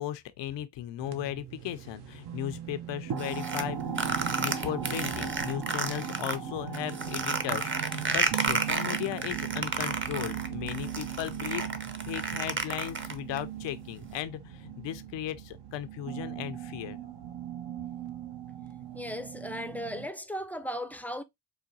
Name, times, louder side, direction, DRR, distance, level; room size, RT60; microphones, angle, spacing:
voice 1, 0.0-11.7 12.0-17.0, left 12 dB, 85° left, 0.6 m, -36 dB
sound 1, 1.0-20.1, right 8 dB, 70° right, 0.8 m, -38 dB
sound 2, 3.2-6.4 6.7-13.4, right 4 dB, 30° right, 0.7 m, -31 dB
voice 2, 18.9-21.2, equal, 5° left, 0.4 m, -36 dB
4.8 x 2.2 x 2.7 m
cardioid pair, 60°, 42 cm